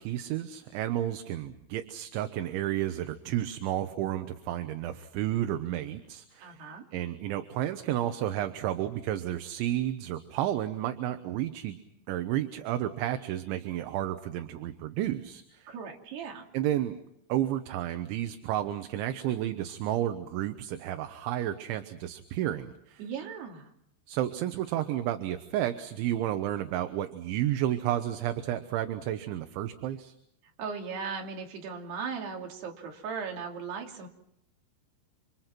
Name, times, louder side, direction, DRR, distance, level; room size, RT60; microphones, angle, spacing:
voice 1, 0.0-6.6 6.9-11.8 12.1-15.7 16.5-17.0 17.3-23.0 24.1-30.1, right 12 dB, 75° right, 8 dB, 3.2 m, -31 dB
voice 2, 6.4-6.9 15.7-16.4 23.0-23.7 30.6-34.1, right 6 dB, 55° right, 1 dB, 4.7 m, -37 dB
29.5 x 26.0 x 6.0 m, 0.77 s
omnidirectional pair, 5.8 m